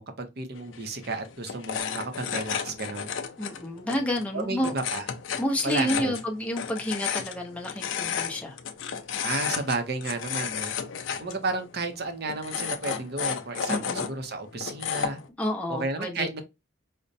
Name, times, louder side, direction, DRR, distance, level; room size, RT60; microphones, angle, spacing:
voice 1, 0.0-3.1 4.3-5.1 5.6-6.1 9.2-10.7 11.2-15.2 15.7-16.4, right 3 dB, 50° right, 0.6 m, -32 dB
sound 1, 0.6-15.3, left 7 dB, 65° left, 0.5 m, -33 dB
voice 2, 3.4-4.7 5.4-8.6 13.7-14.1 15.4-16.3, left 1 dB, 5° left, 0.6 m, -29 dB
5.0 x 2.1 x 2.6 m
head